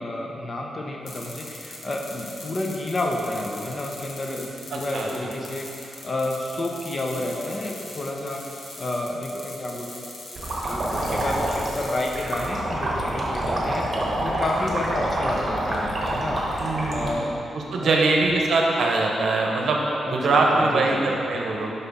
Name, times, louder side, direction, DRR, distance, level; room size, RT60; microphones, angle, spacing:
voice 1, 0.0-16.4 16.9-17.3 17.8-18.2 20.0-21.1, left 1 dB, 35° left, 0 dB, 0.6 m, -30 dB
sound 1, 1.1-12.5, left 2 dB, 70° left, 1.1 m, -41 dB
voice 2, 4.7-5.3 16.6-21.7, right 3 dB, 70° right, 0 dB, 0.8 m, -23 dB
sound 2, 10.4-17.1, right 1 dB, 40° right, 1.2 m, -27 dB
5.5 x 5.4 x 3.5 m, 2.8 s
wide cardioid pair, 120°, 0 cm